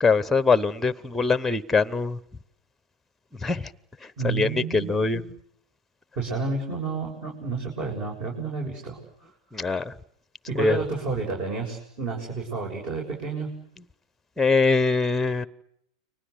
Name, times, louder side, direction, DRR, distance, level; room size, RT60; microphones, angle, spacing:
voice 1, 0.0-2.2 3.4-3.7 4.0-5.2 9.5-9.9 10.5-10.8 14.4-15.5, left 4 dB, 5° left, 17 dB, 1.0 m, -23 dB
voice 2, 4.2-5.2 6.2-9.3 10.5-13.5, right 4 dB, 40° right, 0 dB, 7.2 m, -30 dB
30.0 x 24.0 x 8.2 m, 0.75 s
hypercardioid pair, 100°, 3 cm